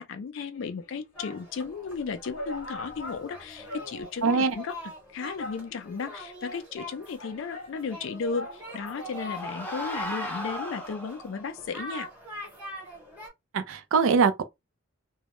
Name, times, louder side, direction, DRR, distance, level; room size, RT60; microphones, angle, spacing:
voice 1, 0.0-4.7 5.1-12.1, left 5 dB, 60° left, 0.3 m, -35 dB
sound 1, 0.5-1.5 2.0-2.1 2.3-4.3 4.6-4.7 5.4-6.1 6.9-10.0 10.3-10.4, left 2 dB, 85° left, 0.7 m, -42 dB
sound 2, 1.1-13.3, equal, 5° right, 0.9 m, -44 dB
voice 2, 4.2-4.6 13.5-14.4, right 5 dB, 75° right, 0.4 m, -22 dB
sound 3, 8.5-11.5, left 1 dB, 10° left, 0.5 m, -36 dB
2.2 x 2.0 x 2.9 m
head